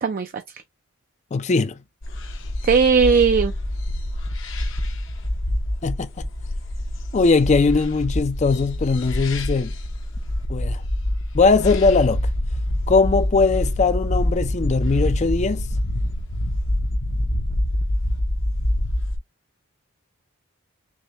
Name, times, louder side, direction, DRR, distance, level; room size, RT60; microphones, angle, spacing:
voice 1, 0.0-0.3 2.6-3.5, right 5 dB, 40° right, 0.4 m, -17 dB
voice 2, 1.3-1.7 5.8-6.3 7.1-9.7 10.5-10.8 11.3-12.2 12.9-15.7, left 4 dB, 30° left, 0.4 m, -20 dB
sound 1, 2.0-19.2, left 1 dB, 60° left, 0.8 m, -25 dB
6.3 x 2.2 x 2.8 m
head